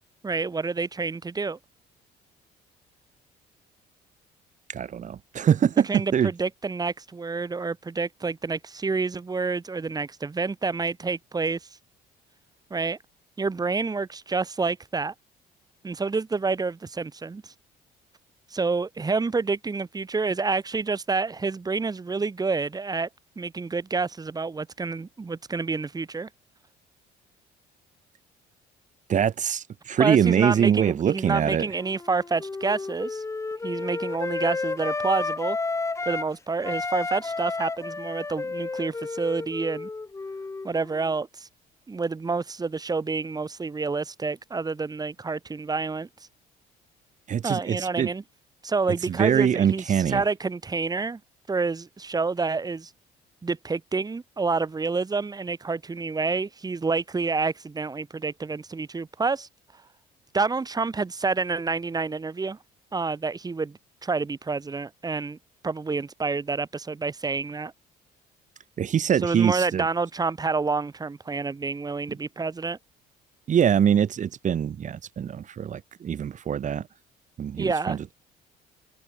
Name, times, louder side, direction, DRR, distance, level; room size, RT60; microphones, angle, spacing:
voice 1, 0.2-1.6 5.9-11.6 12.7-13.0 13.4-15.1 15.8-17.5 18.5-23.1 23.4-26.3 30.0-33.2 33.6-35.6 36.1-39.9 40.6-41.5 41.9-46.1 47.4-48.2 48.6-51.2 51.5-52.9 53.4-59.5 60.3-62.6 62.9-65.4 65.6-67.7 69.2-72.8 77.6-78.0, right 4 dB, 20° right, 5.5 m, -28 dB
voice 2, 4.7-6.3 29.1-31.7 47.3-48.1 49.1-50.2 68.8-69.8 73.5-76.9 77.4-78.1, right 8 dB, 45° right, 4.8 m, -23 dB
Wind instrument woodwind instrument, 31.8-36.3 36.6-41.1, left 3 dB, 15° left, 1.3 m, -32 dB
cardioid pair, 110°, 17 cm